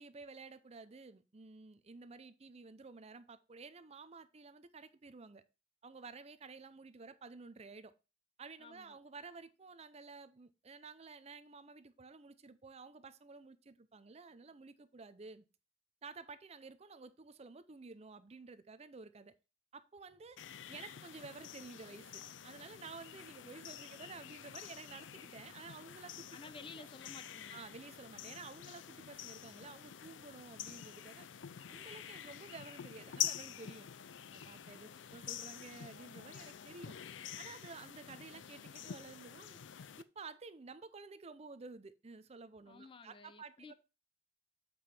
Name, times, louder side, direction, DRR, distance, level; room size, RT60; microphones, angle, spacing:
voice 1, 0.0-5.4 5.8-7.9 8.4-15.4 16.0-19.3 19.7-20.4 20.7-26.3 26.8-26.9 27.5-31.3 31.7-33.9 34.3-36.9 37.4-39.9 40.2-43.7, right 4 dB, 35° right, 0.6 m, -52 dB
voice 2, 8.6-9.0 26.3-27.6 34.8-35.0 42.6-43.7, left 4 dB, 30° left, 0.4 m, -53 dB
sound 1, 20.4-40.0, left 10 dB, 90° left, 0.5 m, -47 dB
7.8 x 5.2 x 4.3 m
head